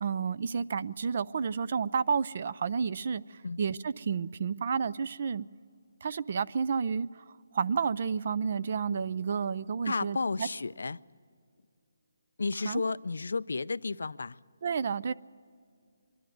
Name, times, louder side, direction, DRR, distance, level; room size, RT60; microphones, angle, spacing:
voice 1, 0.0-5.5 6.0-7.2 7.5-10.5 12.6-12.8 14.6-15.1, right 6 dB, 40° right, 0.4 m, -31 dB
Acoustic guitar, 8.7-11.1, right 1 dB, 60° right, 5.4 m, -62 dB
voice 2, 9.8-11.0 12.4-14.4, left 4 dB, 80° left, 0.4 m, -32 dB
24.5 x 11.5 x 9.1 m
hypercardioid pair, 170°, 0 cm